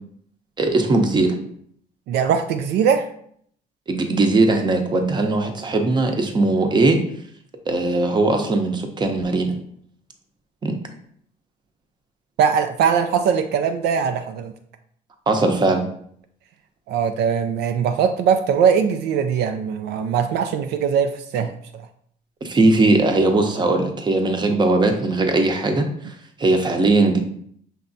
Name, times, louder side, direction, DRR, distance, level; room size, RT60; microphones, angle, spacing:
voice 1, 0.6-1.3 3.9-7.0 7.7-9.6 10.6-10.8 15.3-15.8 22.4-25.9 26.4-27.2, right 2 dB, 25° right, 5 dB, 0.7 m, -19 dB
voice 2, 2.1-3.1 12.4-14.5 16.9-21.9, right 7 dB, 75° right, 7 dB, 0.4 m, -21 dB
5.8 x 3.2 x 2.6 m, 0.64 s
cardioid pair, 110°, 17 cm